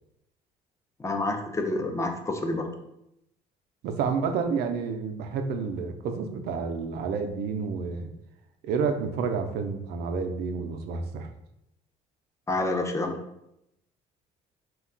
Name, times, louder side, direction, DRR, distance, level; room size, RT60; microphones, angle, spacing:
voice 1, 1.0-2.7 12.5-13.2, left 2 dB, 15° left, 4 dB, 0.5 m, -28 dB
voice 2, 3.8-8.1 8.6-11.3, right 5 dB, 70° right, 6 dB, 0.4 m, -29 dB
2.3 x 2.2 x 3.7 m, 0.82 s
supercardioid pair, 75°, 17 cm